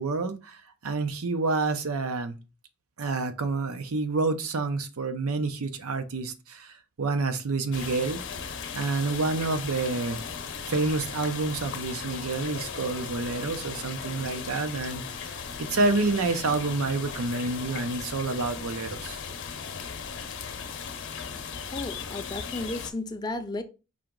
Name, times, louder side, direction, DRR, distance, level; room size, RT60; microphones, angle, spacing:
voice 1, 0.0-2.4 3.0-8.2 8.7-10.2 10.7-15.3 15.6-19.2, right 3 dB, 85° right, 0.6 m, -28 dB
sound 1, 7.7-22.9, left 6 dB, 60° left, 0.7 m, -37 dB
voice 2, 21.7-23.6, left 2 dB, 20° left, 0.4 m, -33 dB
4.9 x 2.9 x 3.7 m
head